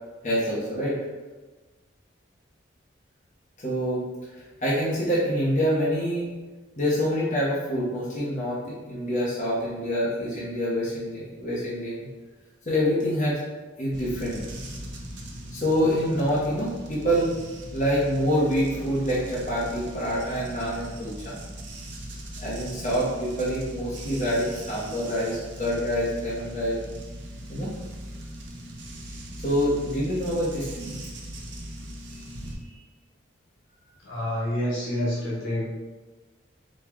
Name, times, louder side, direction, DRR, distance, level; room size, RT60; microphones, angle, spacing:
voice 1, 0.2-1.0 3.6-4.1 4.4-6.3 6.8-8.6 8.9-12.1 12.7-13.4 13.8-14.4 15.5-17.3 17.7-21.4 22.4-26.8 27.5-27.7 29.4-30.9, equal, 40° left, -7 dB, 1.0 m, -26 dB
sound 1, 13.9-32.6, right 1 dB, 60° right, 0.6 m, -39 dB
voice 2, 34.0-35.7, left 1 dB, 75° left, -5 dB, 1.3 m, -28 dB
4.3 x 2.3 x 4.4 m, 1.3 s
head